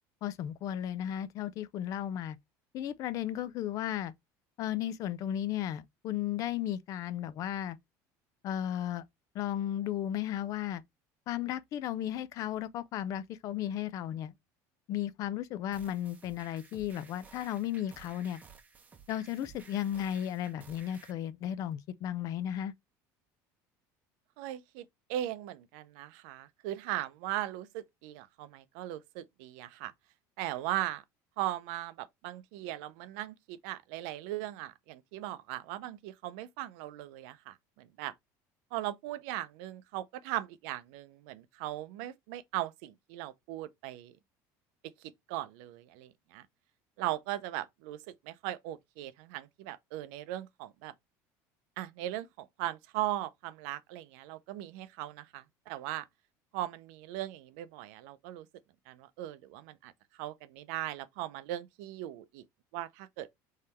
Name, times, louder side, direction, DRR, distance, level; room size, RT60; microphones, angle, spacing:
voice 1, 0.2-2.4 2.7-4.1 4.6-7.8 8.4-9.0 9.3-10.8 11.3-14.3 14.9-18.4 19.1-22.7, left 11 dB, 45° left, 0.4 m, -34 dB
sound 1, 15.7-21.1, right 5 dB, 20° right, 0.7 m, -55 dB
voice 2, 24.4-29.9 30.4-31.0 31.4-38.1 38.7-44.2 45.3-46.4 47.0-50.9 51.8-56.1 56.5-58.5 58.9-59.9 60.2-62.4 62.7-63.3, right 14 dB, 80° right, 0.6 m, -38 dB
3.7 x 3.2 x 4.3 m
cardioid pair, 165°, 8 cm